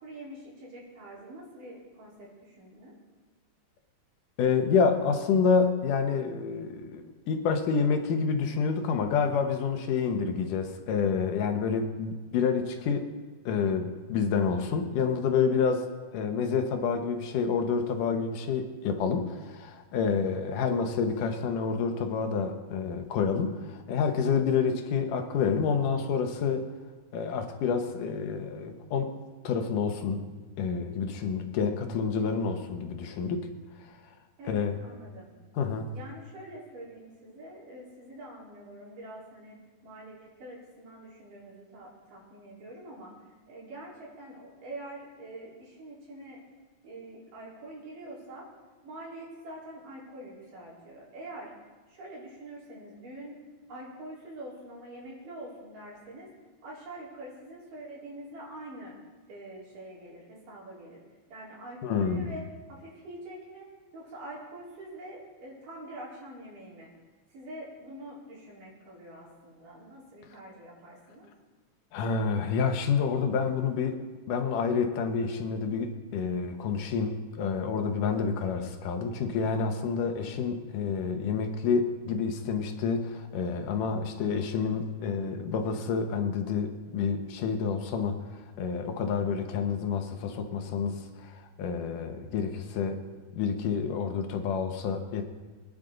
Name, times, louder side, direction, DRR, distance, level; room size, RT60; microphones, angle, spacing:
voice 1, 0.0-3.0 34.4-35.3 35.9-39.6 39.8-43.1 43.5-46.4 46.8-48.5 48.8-51.5 51.9-53.4 53.7-56.3 56.6-58.9 59.3-61.0 61.3-62.4 62.7-63.7 63.9-66.9 67.3-71.3, right 1 dB, 85° right, -6 dB, 5.8 m, -45 dB
voice 2, 4.4-13.1 13.5-26.7 27.1-29.1 29.4-30.2 30.6-33.5 34.5-34.8 35.6-35.9 61.8-62.3 71.9-74.0 74.3-88.2 88.6-93.0 93.3-95.2, left 5 dB, 85° left, 6 dB, 2.8 m, -28 dB
24.0 x 10.0 x 3.9 m, 1.3 s
omnidirectional pair, 3.6 m